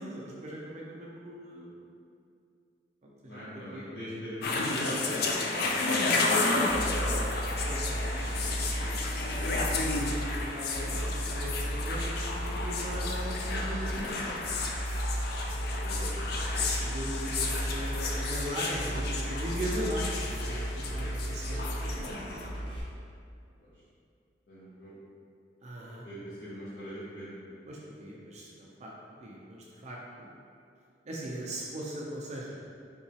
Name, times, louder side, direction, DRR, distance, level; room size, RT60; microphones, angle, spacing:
voice 1, 0.0-1.8 3.0-3.9 6.3-6.5 7.7-14.4 16.6-22.2 25.6-26.0 27.7-28.9 29.2-30.3 31.1-32.6, equal, 40° right, -4 dB, 0.4 m, -39 dB
voice 2, 3.2-7.5 15.7-16.1 23.6-23.7 24.5-24.9 26.0-27.3, equal, 75° left, -13 dB, 0.9 m, -40 dB
sound 1, 4.4-22.5, left 3 dB, 60° left, 0.4 m, -32 dB
sound 2, 6.7-22.8, equal, 30° left, 0.8 m, -34 dB
3.7 x 2.8 x 2.8 m, 2.4 s
head